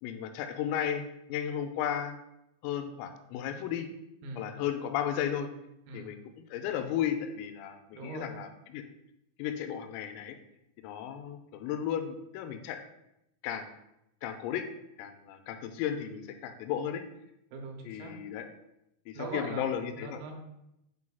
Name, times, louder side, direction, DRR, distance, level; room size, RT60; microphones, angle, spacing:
voice 1, 0.0-2.2 2.6-3.9 4.4-5.5 5.9-8.8 9.4-10.4 10.8-12.8 13.4-13.7 14.2-14.7 15.0-17.0 17.8-18.5 19.1-20.2, left 9 dB, 90° left, 6 dB, 3.2 m, -34 dB
voice 2, 7.9-8.3 17.5-18.2 19.2-20.3, right 3 dB, 85° right, 2 dB, 3.7 m, -41 dB
9.7 x 4.5 x 2.3 m, 0.85 s
omnidirectional pair, 5.9 m